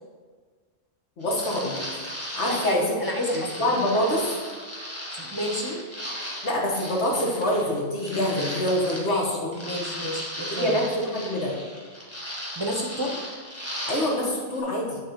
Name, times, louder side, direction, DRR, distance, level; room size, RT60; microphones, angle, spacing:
voice 1, 1.2-2.8 3.3-4.3 6.4-9.6 10.5-11.5 13.9-15.0, left 1 dB, 90° left, -2 dB, 1.8 m, -26 dB
sound 1, 1.2-9.2 9.5-14.3 14.5-14.6, equal, 15° left, 1.5 m, -36 dB
voice 2, 2.5-4.2 5.2-5.8 9.1-9.4 9.6-10.8 12.6-13.2, equal, 25° right, 0 dB, 0.6 m, -30 dB
9.0 x 3.7 x 5.9 m, 1.5 s
omnidirectional pair, 1.1 m